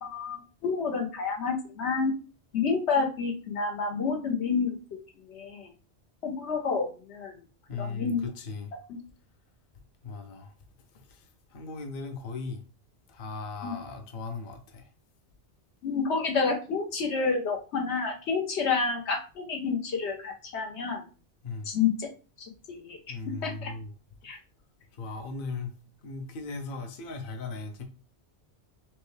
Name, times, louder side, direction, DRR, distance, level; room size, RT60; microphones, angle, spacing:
voice 1, 0.0-2.1 2.5-4.8 5.3-5.7 6.2-7.4 7.8-8.2 8.9-9.0 13.6-13.7 15.8-21.0 21.7-22.1 22.4-23.1 23.4-23.7 24.2-24.4, left 5 dB, 85° left, 3 dB, 1.2 m, -29 dB
voice 2, 7.7-8.7 10.0-10.5 11.1-11.2 11.5-12.6 13.1-14.9 21.4-21.7 23.1-23.9 25.0-25.7 26.0-27.8, left 4 dB, 55° left, 5 dB, 0.8 m, -37 dB
5.8 x 2.2 x 3.2 m, 0.35 s
omnidirectional pair, 1.1 m